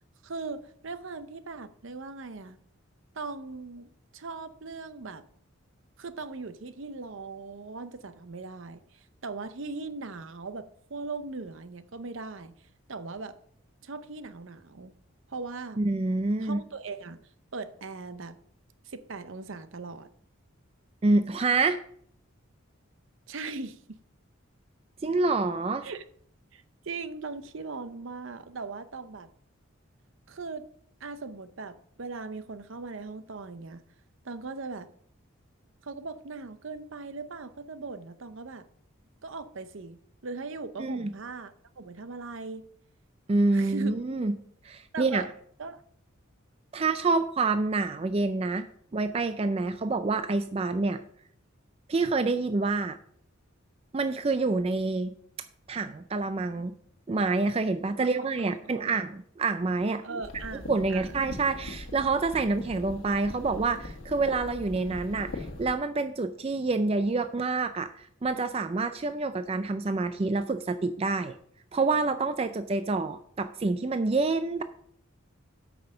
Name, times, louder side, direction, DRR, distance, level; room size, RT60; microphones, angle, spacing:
voice 1, 0.2-2.6 3.1-5.2 6.0-12.5 12.9-13.4 13.8-14.9 15.3-15.8 16.4-17.2 17.5-18.4 18.8-20.1 23.3-24.0 25.8-26.0 26.5-29.3 30.3-30.6 31.0-33.8 34.2-34.9 35.8-38.7 39.2-42.6 43.5-43.9 44.9-45.3 45.6-45.8 46.8-47.1 58.0-59.0 60.0-61.2, right 3 dB, 65° right, 0.7 m, -39 dB
voice 2, 15.8-16.6 21.0-21.8 25.0-25.9 40.8-41.1 43.3-44.4 44.6-45.3 46.7-48.7 48.9-51.0 51.9-53.0 53.9-55.1 55.7-56.7 57.1-60.0 60.7-71.3 71.7-74.6, right 3 dB, 30° right, 0.4 m, -27 dB
sound 1, 60.2-65.8, left 2 dB, 80° left, 1.4 m, -41 dB
8.6 x 6.0 x 5.5 m
head